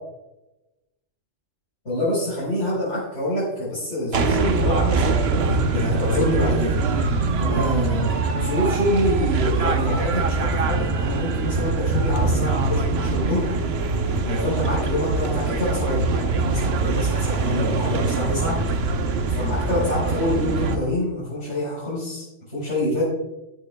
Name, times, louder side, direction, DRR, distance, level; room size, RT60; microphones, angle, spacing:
voice 1, 1.8-6.7 7.3-13.5 14.2-18.6 19.3-23.0, left 1 dB, 80° left, -9 dB, 4.9 m, -26 dB
sound 1, 4.1-20.8, right 3 dB, 65° right, 1.1 m, -23 dB
13.0 x 11.5 x 2.3 m, 0.96 s
omnidirectional pair, 1.2 m